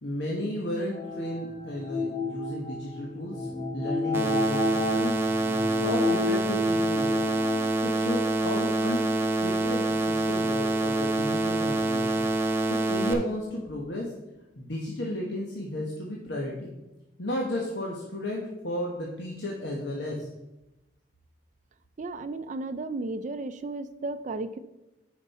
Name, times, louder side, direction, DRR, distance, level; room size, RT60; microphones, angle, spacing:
voice 1, 0.0-5.2 5.8-7.2 7.8-9.1 9.4-12.2 12.7-14.1 14.6-16.7 17.2-20.3, left 1 dB, 70° left, -2 dB, 1.1 m, -33 dB
sound 1, 0.9-7.7, left 3 dB, 25° left, 1.1 m, -31 dB
sound 2, 4.1-13.1, right 2 dB, 15° right, 0.7 m, -26 dB
voice 2, 22.0-24.6, right 2 dB, 45° right, 10 dB, 0.4 m, -34 dB
9.2 x 5.2 x 4.1 m, 0.99 s
head